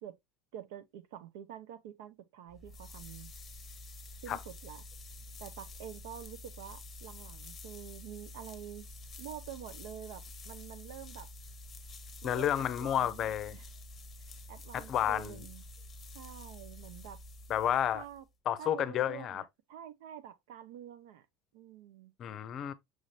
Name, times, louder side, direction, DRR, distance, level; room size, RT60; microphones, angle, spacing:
voice 1, 0.5-3.3 4.2-4.8 5.4-8.9 9.2-11.3 12.2-13.7 14.5-15.6 16.1-17.2 17.9-18.2 18.6-21.3 21.5-22.1, right 10 dB, 75° right, 0.7 m, -47 dB
sound 1, 2.5-18.3, left 2 dB, 25° left, 0.9 m, -49 dB
voice 2, 12.2-13.5 14.7-15.4 17.5-18.0 18.5-19.4 22.2-22.7, left 10 dB, 40° left, 0.5 m, -31 dB
6.3 x 2.6 x 3.1 m
supercardioid pair, 115°, 0 cm